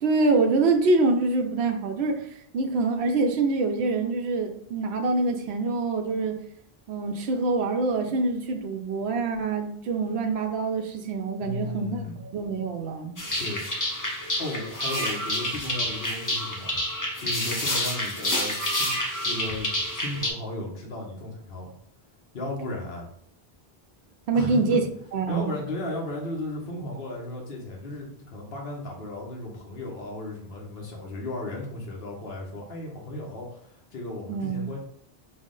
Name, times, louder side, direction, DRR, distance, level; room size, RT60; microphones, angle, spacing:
voice 1, 0.0-2.3 2.5-6.4 6.9-13.2 24.3-24.8 25.1-25.5 34.3-34.7, right 3 dB, 90° right, 4 dB, 0.8 m, -25 dB
voice 2, 11.4-12.2 13.4-13.7 14.4-16.7 17.2-18.9 19.2-21.7 22.3-23.1 24.3-24.8 25.3-34.8, left 1 dB, 65° left, -1 dB, 1.1 m, -35 dB
sound 1, 13.2-20.3, equal, 25° left, 0.6 m, -28 dB
5.5 x 2.1 x 3.7 m, 0.65 s
omnidirectional pair, 1.0 m